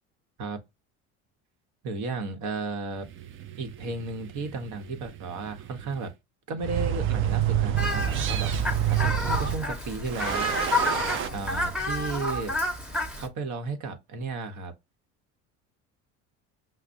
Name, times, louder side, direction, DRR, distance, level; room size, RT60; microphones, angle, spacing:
voice 1, 1.8-3.1 3.6-6.1 6.5-10.6 11.3-12.6 13.2-14.7, right 3 dB, 60° right, 1.0 m, -34 dB
sound 1, 3.0-6.1 6.6-9.6 10.1-11.3, right 10 dB, 40° right, 0.5 m, -29 dB
Fowl, 7.8-13.3, left 1 dB, ahead, 0.9 m, -30 dB
5.7 x 2.0 x 2.5 m
supercardioid pair, 95°, 33 cm